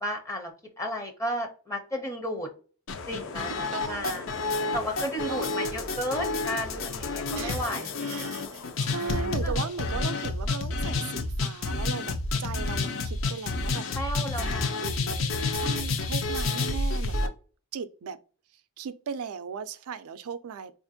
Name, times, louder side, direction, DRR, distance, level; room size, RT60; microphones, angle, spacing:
voice 1, 0.0-2.5 3.1-4.2 4.7-8.1 9.4-9.5 14.0-14.8, equal, 15° left, 0.5 m, -33 dB
sound 1, 2.9-17.3, left 3 dB, 60° left, 0.5 m, -30 dB
voice 2, 3.7-4.2 5.3-5.7 7.3-13.8 14.4-17.3 17.7-18.2 18.8-20.7, right 6 dB, 80° right, 0.4 m, -37 dB
4.2 x 2.5 x 2.6 m
head